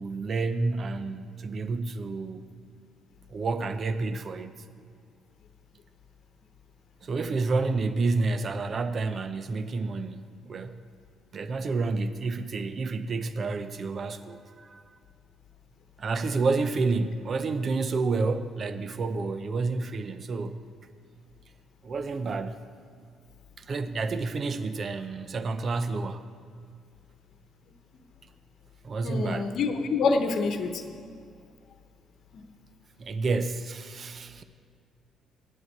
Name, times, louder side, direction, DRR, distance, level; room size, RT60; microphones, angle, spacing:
voice 1, 0.0-2.5 3.3-4.6 7.0-10.8 11.3-14.8 16.0-20.6 21.8-22.6 23.6-26.2 28.8-29.5 33.0-34.4, right 3 dB, 45° right, 0.7 m, -29 dB
voice 2, 29.0-30.8 32.3-32.4, left 4 dB, 60° left, 1.0 m, -26 dB
9.4 x 7.9 x 8.5 m
supercardioid pair, 75°, 0 cm